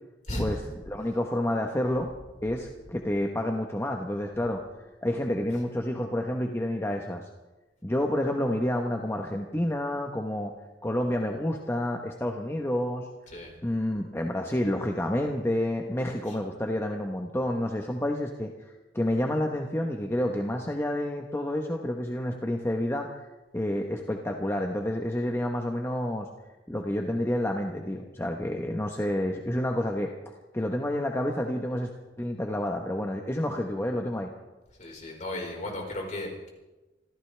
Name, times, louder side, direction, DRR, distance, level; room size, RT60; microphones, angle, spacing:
voice 1, 0.3-0.6 13.3-13.5 16.3-16.4 34.8-36.5, left 1 dB, 45° left, 0 dB, 4.5 m, -35 dB
voice 2, 0.9-2.1 2.4-4.6 5.0-7.2 7.8-10.5 10.8-13.1 13.6-18.5 18.9-23.3 23.5-26.3 26.7-30.1 30.5-34.3, left 1 dB, 15° left, 2 dB, 1.0 m, -29 dB
26.5 x 15.0 x 3.4 m, 1.1 s
head